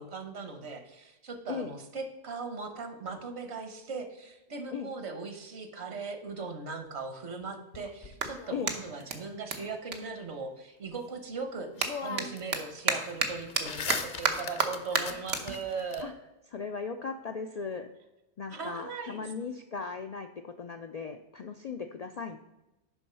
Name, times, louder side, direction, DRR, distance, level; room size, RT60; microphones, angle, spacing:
voice 1, 0.0-11.7 12.0-16.1 18.5-19.3, right 4 dB, 65° right, 7 dB, 1.3 m, -39 dB
Clapping, 6.1-6.2 6.8-10.9 11.2-17.8, right 5 dB, 85° right, 1.3 m, -35 dB
sound 1, 7.7-9.0 11.2-11.3 11.7-12.6 12.9-16.0, left 5 dB, 50° left, 0.7 m, -39 dB
voice 2, 16.5-17.9 18.4-22.4, left 5 dB, 75° left, 7 dB, 0.3 m, -37 dB
7.0 x 5.4 x 5.5 m, 1.0 s
omnidirectional pair, 1.2 m